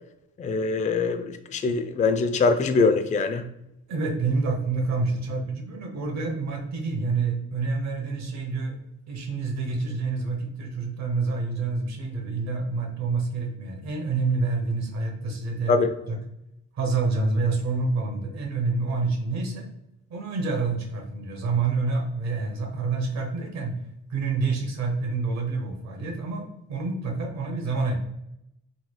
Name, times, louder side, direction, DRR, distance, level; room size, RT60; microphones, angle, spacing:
voice 1, 0.4-3.5 15.7-15.9, left 4 dB, 25° left, 8 dB, 0.4 m, -23 dB
voice 2, 3.9-8.8 9.1-15.8 16.1-16.2 16.7-19.7 20.1-23.7 24.1-27.9, right 3 dB, 60° right, 1 dB, 0.9 m, -27 dB
3.9 x 3.0 x 2.2 m, 0.82 s
cardioid pair, 90°, 30 cm